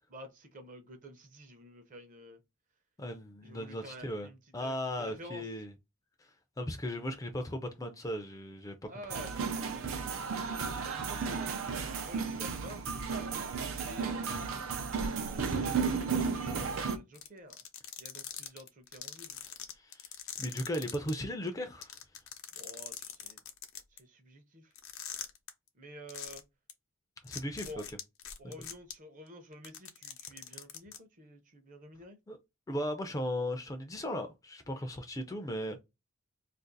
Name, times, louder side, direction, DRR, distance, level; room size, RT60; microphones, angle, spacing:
voice 1, 0.1-2.4 3.4-5.5 8.9-10.1 10.8-11.6 12.0-13.0 13.7-14.4 14.9-17.6 18.0-19.4 22.5-23.4 23.9-24.7 25.7-26.4 27.6-27.8 28.4-32.2, equal, 40° right, 0.7 m, -50 dB
voice 2, 3.0-4.3 4.5-5.7 6.2-6.3 6.6-8.9 19.7-20.1 20.4-22.0 27.2-27.7 28.4-28.5 32.3-32.4 32.7-35.8, left 1 dB, 15° left, 0.4 m, -37 dB
sound 1, 9.1-17.0, right 5 dB, 85° right, 0.5 m, -34 dB
sound 2, 17.1-21.1 21.5-21.6 21.8-24.0 24.8-25.5 26.1-26.4 26.7-26.8 27.3-28.9 29.5-31.0, left 10 dB, 85° left, 0.6 m, -42 dB
2.5 x 2.4 x 3.8 m
head